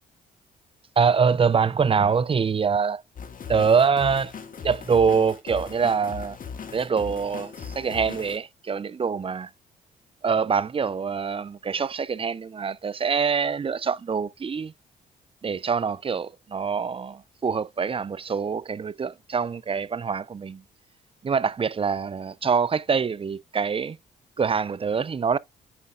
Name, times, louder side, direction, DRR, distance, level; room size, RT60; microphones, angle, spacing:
voice 1, 1.0-3.0 3.5-4.3 4.6-6.4 6.7-9.5 10.2-14.7 15.4-20.6 21.2-24.0 24.4-25.4, right 6 dB, 30° right, 0.6 m, -24 dB
sound 1, 3.2-8.4, left 6 dB, 50° left, 1.9 m, -38 dB
9.7 x 5.3 x 2.4 m
supercardioid pair, 65°, 18 cm